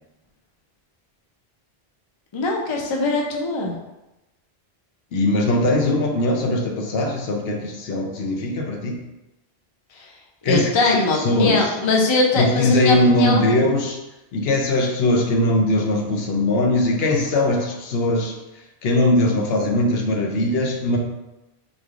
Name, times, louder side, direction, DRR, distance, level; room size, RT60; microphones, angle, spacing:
voice 1, 2.3-3.8 10.0-10.1 10.4-13.5, left 3 dB, 40° left, 0 dB, 0.4 m, -21 dB
voice 2, 5.1-9.0 10.4-11.7 12.4-14.0 14.3-18.3 18.8-21.0, left 1 dB, 70° left, 1 dB, 0.8 m, -20 dB
3.9 x 3.2 x 2.4 m, 0.97 s
omnidirectional pair, 1.1 m